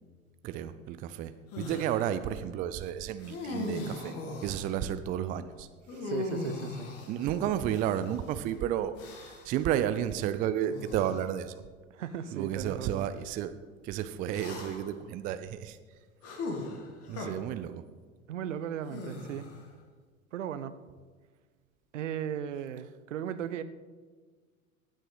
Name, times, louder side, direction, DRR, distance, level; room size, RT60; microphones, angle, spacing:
voice 1, 0.4-4.1 4.4-6.1 7.1-9.0 9.2-11.6 12.3-13.5 13.8-15.8 16.7-16.8 17.1-17.8, right 10 dB, 20° right, 12 dB, 0.4 m, -32 dB
sound 1, 1.5-2.0 3.2-4.7 5.9-8.2 9.0-9.6 10.7-11.2 12.0-12.2 14.3-15.0 16.2-17.3 18.9-19.7, left 2 dB, 35° left, 2.2 m, -39 dB
voice 2, 6.0-6.9 11.9-13.1 17.2-17.3 18.3-19.5 20.3-20.7 21.9-23.6, right 9 dB, 65° right, 13 dB, 0.8 m, -36 dB
15.0 x 9.0 x 4.0 m, 1.5 s
figure-of-eight pair, 80°, 40 cm